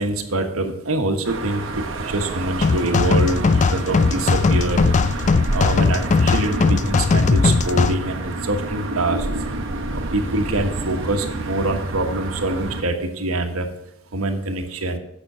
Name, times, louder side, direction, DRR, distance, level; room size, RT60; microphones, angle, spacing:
voice 1, 0.0-4.8 5.5-9.3 10.1-13.7 14.1-15.0, right 2 dB, 85° right, 5 dB, 1.3 m, -24 dB
sound 1, 1.2-12.8, right 2 dB, 65° right, 1.3 m, -28 dB
sound 2, 2.6-7.9, left 4 dB, 35° left, 0.3 m, -18 dB
9.1 x 6.1 x 6.1 m, 0.83 s
head